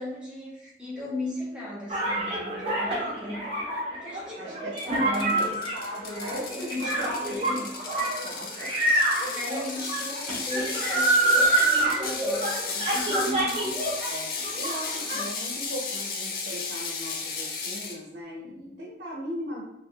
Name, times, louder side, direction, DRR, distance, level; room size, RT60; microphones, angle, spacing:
voice 1, 0.0-3.4 3.9-5.5 6.1-7.7 9.2-13.3, left 1 dB, 5° right, -7 dB, 0.9 m, -37 dB
sound 1, 1.9-14.1 14.4-15.2, right 2 dB, 35° right, 0.8 m, -26 dB
voice 2, 4.4-4.7 5.1-8.9 9.2-9.4 14.1-19.6, equal, 65° right, -5 dB, 0.6 m, -38 dB
Ratchet pawl, 4.8-18.0, left 4 dB, 55° left, 0.4 m, -34 dB
3.3 x 2.4 x 2.2 m, 0.87 s
head